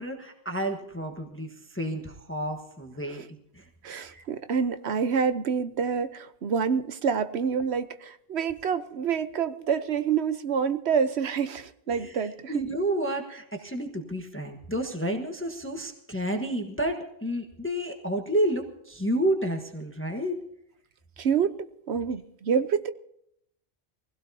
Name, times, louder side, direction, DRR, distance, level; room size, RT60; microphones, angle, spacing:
voice 1, 0.0-3.7 4.1-4.2 11.9-20.4, right 1 dB, 10° left, 3 dB, 1.3 m, -30 dB
voice 2, 3.8-12.5 21.2-21.5 21.9-22.9, right 6 dB, 85° right, 12 dB, 1.2 m, -27 dB
23.0 x 16.5 x 2.8 m, 0.74 s
omnidirectional pair, 1.1 m